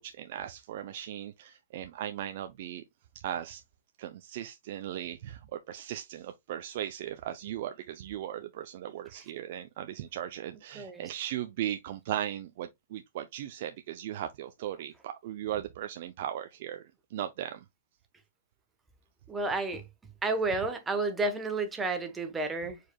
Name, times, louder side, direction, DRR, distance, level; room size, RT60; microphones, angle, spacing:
voice 1, 0.0-2.8 3.2-3.6 4.0-16.8 17.1-17.6, right 11 dB, 55° right, 0.5 m, -37 dB
voice 2, 19.3-19.8 20.2-22.8, right 3 dB, 10° right, 1.1 m, -31 dB
4.7 x 4.6 x 2.3 m
hypercardioid pair, 130°, 0 cm